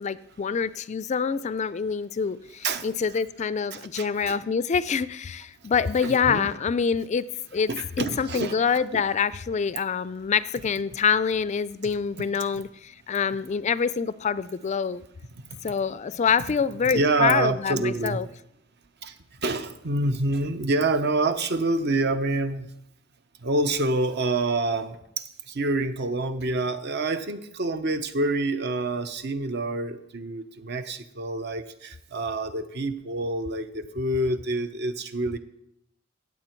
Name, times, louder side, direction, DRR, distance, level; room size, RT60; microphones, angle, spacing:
voice 1, 0.0-7.3 7.5-7.7 8.0-15.0 15.6-18.3, left 6 dB, 35° left, 17 dB, 0.3 m, -26 dB
voice 2, 3.7-4.4 6.0-6.5 7.7-8.6 8.9-9.0 15.6-15.7 16.9-18.2 19.0-19.1 19.4-22.7 23.4-35.4, right 2 dB, 55° right, 10 dB, 0.9 m, -27 dB
15.5 x 8.5 x 4.5 m, 0.78 s
head